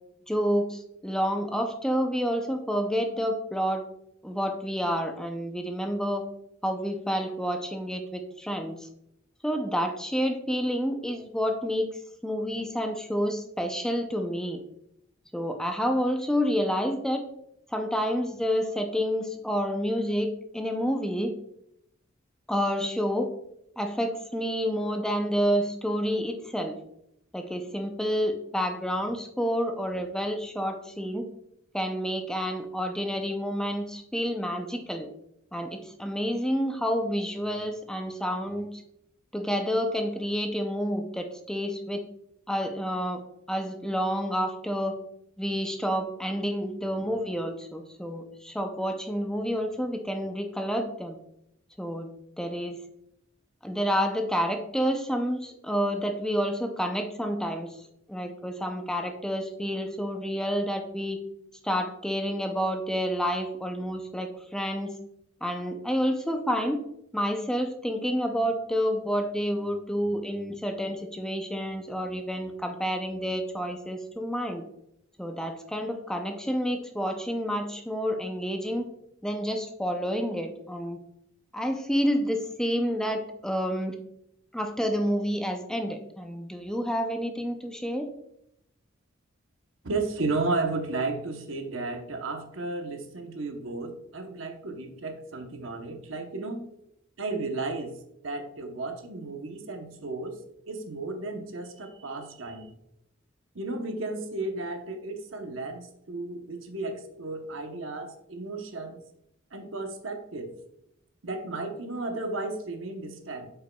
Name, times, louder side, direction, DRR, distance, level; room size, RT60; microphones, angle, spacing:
voice 1, 0.3-3.8 4.2-6.2 6.6-8.9 9.4-11.9 12.2-14.6 15.3-17.2 17.7-21.3 22.5-23.3 23.8-26.8 27.3-31.3 31.7-35.1 35.5-38.8 39.3-42.0 42.5-43.2 43.5-45.0 45.4-51.2 51.8-52.1 52.4-52.8 53.6-57.7 58.1-61.2 61.6-64.9 65.4-66.8 67.1-74.6 75.2-78.8 79.2-81.0 81.5-84.0 84.5-88.1, equal, 5° left, 5 dB, 0.5 m, -29 dB
voice 2, 89.8-96.6 97.2-98.0 98.2-100.4 100.7-102.7 103.5-109.0 109.5-110.5 111.2-113.5, right 3 dB, 70° right, 5 dB, 0.9 m, -33 dB
8.0 x 5.6 x 2.2 m, 0.77 s
head